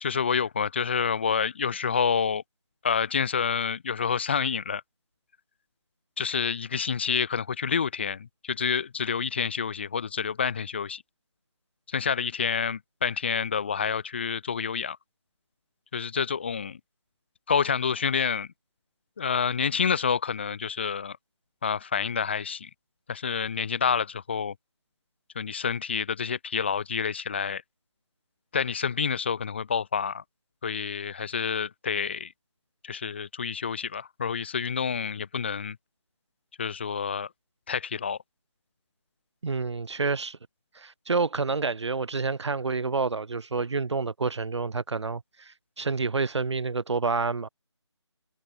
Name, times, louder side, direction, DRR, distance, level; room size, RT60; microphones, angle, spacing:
voice 1, 0.0-2.4 2.8-4.8 6.2-11.0 11.9-15.0 15.9-16.8 17.5-18.5 19.2-21.2 21.6-22.7 23.1-24.5 25.3-27.6 28.5-30.2 30.6-32.3 32.8-35.8 36.6-37.3 37.7-38.2, left 6 dB, 25° left, 0.8 m, -28 dB
voice 2, 39.4-40.4 40.7-47.5, right 4 dB, 70° right, 0.8 m, -28 dB
figure-of-eight pair, 170°, 15 cm